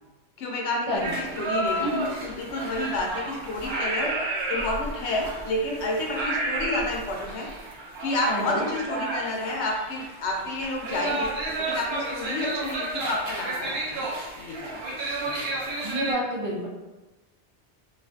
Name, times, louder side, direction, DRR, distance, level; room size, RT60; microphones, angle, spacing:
voice 1, 0.4-1.9 2.2-4.2 4.5-7.5 8.0-11.3 11.6-14.1 14.4-15.0 15.2-15.5, left 1 dB, 85° left, 0 dB, 0.9 m, -30 dB
sound 1, 1.0-16.1, right 2 dB, 70° right, 0.8 m, -32 dB
voice 2, 1.8-2.1 8.3-8.7 15.8-16.7, equal, 40° right, -8 dB, 0.6 m, -29 dB
2.5 x 2.4 x 2.3 m, 1.1 s
omnidirectional pair, 1.1 m